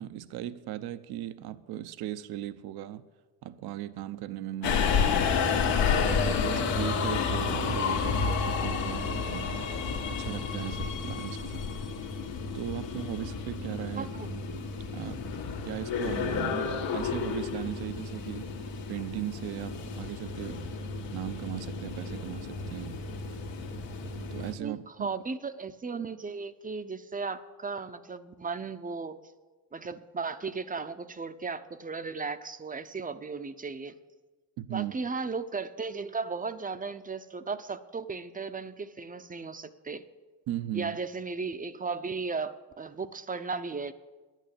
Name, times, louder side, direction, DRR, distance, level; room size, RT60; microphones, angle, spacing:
voice 1, 0.0-3.0 3.4-5.2 5.9-9.7 10.1-11.6 12.5-15.3 15.6-18.5 18.9-20.7 21.1-23.0 24.1-25.1 34.6-34.9 40.5-41.0, right 12 dB, 65° right, 13 dB, 0.7 m, -38 dB
Subway metro underground, 4.6-24.5, left 5 dB, 85° left, 1.7 m, -31 dB
voice 2, 14.0-14.3 24.6-29.2 29.7-34.0 34.7-40.1 40.7-43.9, right 4 dB, 20° right, 12 dB, 0.6 m, -36 dB
10.5 x 9.1 x 8.5 m, 1.3 s
supercardioid pair, 90°, 42 cm